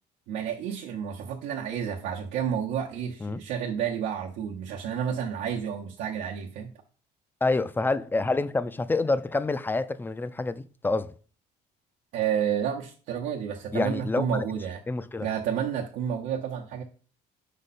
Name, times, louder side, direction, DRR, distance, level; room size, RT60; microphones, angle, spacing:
voice 1, 0.3-6.7 12.1-14.8 15.2-16.8, right 8 dB, 85° right, 0.9 m, -30 dB
voice 2, 7.4-11.1 13.7-14.5 14.9-15.3, left 3 dB, 10° left, 0.4 m, -27 dB
5.3 x 5.1 x 4.2 m
cardioid pair, 110°, 17 cm